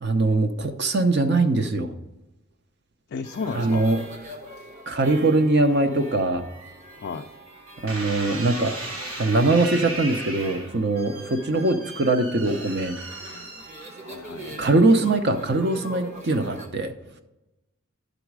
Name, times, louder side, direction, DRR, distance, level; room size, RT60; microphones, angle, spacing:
voice 1, 0.0-1.9 3.6-4.0 4.9-6.5 7.8-8.8 9.2-13.0 14.6-16.9, right 2 dB, 50° right, 8 dB, 0.7 m, -22 dB
voice 2, 3.1-3.8 6.9-7.3 14.0-14.7, left 5 dB, 50° left, 4 dB, 0.3 m, -33 dB
sound 1, 3.2-16.7, right 1 dB, 30° right, 1.0 m, -43 dB
sound 2, 7.9-14.3 14.9-15.4, right 2 dB, 65° right, 1.5 m, -36 dB
10.5 x 4.0 x 4.7 m, 0.97 s
head